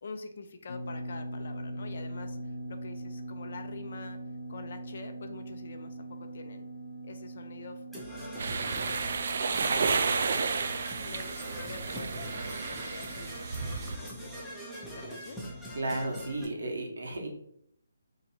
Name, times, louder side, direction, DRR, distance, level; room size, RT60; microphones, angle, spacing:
voice 1, 0.0-4.2 4.5-6.7 7.0-8.3 8.6-10.8 11.0-14.5 14.9-15.4, left 4 dB, 55° left, 7 dB, 0.5 m, -46 dB
sound 1, 0.7-16.5, right 1 dB, 85° left, 0.9 m, -43 dB
Percussion / Brass instrument, 7.9-16.4, equal, ahead, 0.6 m, -43 dB
sound 2, 8.4-14.0, right 5 dB, 55° right, 0.3 m, -31 dB
voice 2, 15.7-17.3, right 2 dB, 75° right, 0 dB, 1.2 m, -33 dB
2.9 x 2.6 x 4.4 m, 0.70 s
hypercardioid pair, 165°, 0 cm